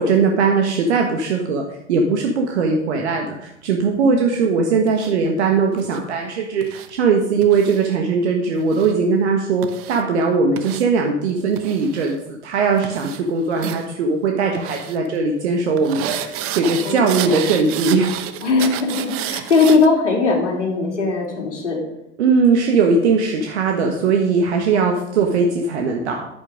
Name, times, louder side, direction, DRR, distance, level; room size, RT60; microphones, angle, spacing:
voice 1, 0.0-1.6 1.9-18.1 22.2-26.3, right 4 dB, 70° right, 3 dB, 1.5 m, -19 dB
sound 1, 4.9-5.1 5.8-6.0 6.6-6.9 7.4-7.9 8.6-8.9 9.6-10.0 10.6-10.8 11.6-12.1 12.8-13.2 13.5-13.8 14.5-15.0 15.8-19.9, right 11 dB, 40° right, 1.0 m, -31 dB
voice 2, 16.8-17.4 18.4-21.8 24.7-24.8, left 4 dB, 80° left, 0 dB, 3.4 m, -19 dB
11.0 x 8.9 x 5.0 m, 0.86 s
figure-of-eight pair, 85°, 35 cm